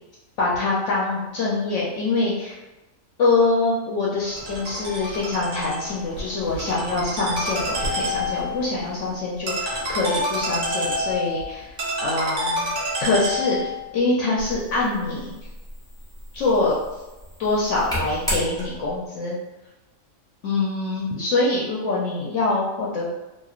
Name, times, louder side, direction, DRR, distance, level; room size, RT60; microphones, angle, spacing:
voice 1, 0.4-2.6 3.2-11.7 12.0-12.7 13.0-15.3 16.3-16.8 17.4-19.4 20.4-23.1, left 3 dB, 70° left, -5 dB, 0.8 m, -24 dB
Ringtone, 4.3-13.8, equal, 55° right, 1.1 m, -28 dB
sound 1, 14.4-19.1, equal, 5° left, 0.4 m, -34 dB
3.0 x 2.6 x 2.3 m, 1.0 s
omnidirectional pair, 1.4 m